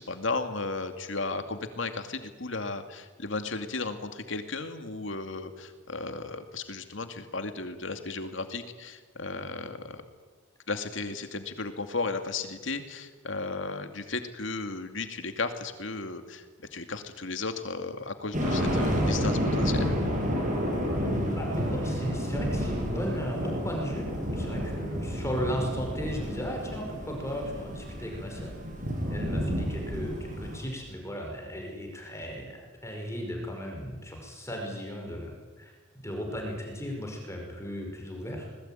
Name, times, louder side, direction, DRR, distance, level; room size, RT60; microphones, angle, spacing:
voice 1, 0.0-10.0 10.7-20.0, left 3 dB, 75° left, 7 dB, 2.5 m, -35 dB
sound 1, 18.3-30.6, equal, 40° right, 7.4 m, -30 dB
voice 2, 21.4-24.1 24.3-28.5 29.1-35.7 36.0-38.5, equal, 15° left, 1 dB, 5.4 m, -36 dB
26.0 x 20.5 x 9.2 m, 1.4 s
head